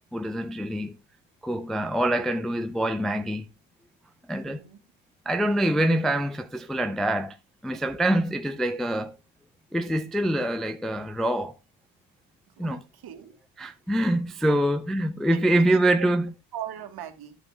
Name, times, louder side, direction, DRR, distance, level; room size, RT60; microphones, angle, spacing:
voice 1, 0.1-1.0 1.4-3.4 4.3-4.6 5.3-7.4 7.6-9.1 9.7-11.5 12.6-12.8 13.6-16.2, right 1 dB, ahead, 0.5 m, -25 dB
voice 2, 4.5-4.8 12.6-13.3 14.5-14.6 15.3-16.1 16.5-17.4, right 9 dB, 50° right, 1.9 m, -40 dB
11.5 x 7.0 x 3.5 m
cardioid pair, 120°, 48 cm